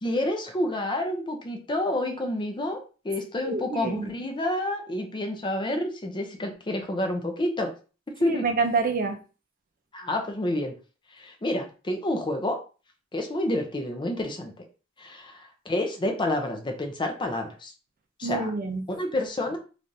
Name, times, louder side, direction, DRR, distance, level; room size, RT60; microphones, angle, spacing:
voice 1, 0.0-7.7 8.2-8.4 9.9-10.7 11.1-12.6 13.1-14.5 15.0-17.7 18.2-18.5 18.9-19.6, left 1 dB, 25° left, 4 dB, 0.5 m, -29 dB
voice 2, 3.4-4.1 8.3-9.2 18.2-18.8, right 4 dB, 45° right, 5 dB, 0.5 m, -27 dB
3.3 x 2.5 x 2.6 m, 0.34 s
head